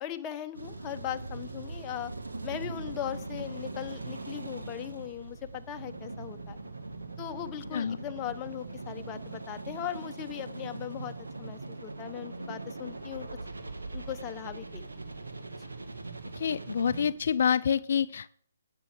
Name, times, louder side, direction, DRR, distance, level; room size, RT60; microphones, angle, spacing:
voice 1, 0.0-2.1 2.4-6.6 7.2-13.3 13.9-15.1, left 11 dB, 20° left, 7 dB, 0.8 m, -39 dB
sound 1, 0.5-17.1, right 3 dB, 85° right, 1.8 m, -41 dB
voice 2, 16.3-18.3, left 7 dB, 60° left, 14 dB, 0.3 m, -27 dB
9.4 x 6.7 x 7.5 m, 0.65 s
hypercardioid pair, 145°, 0 cm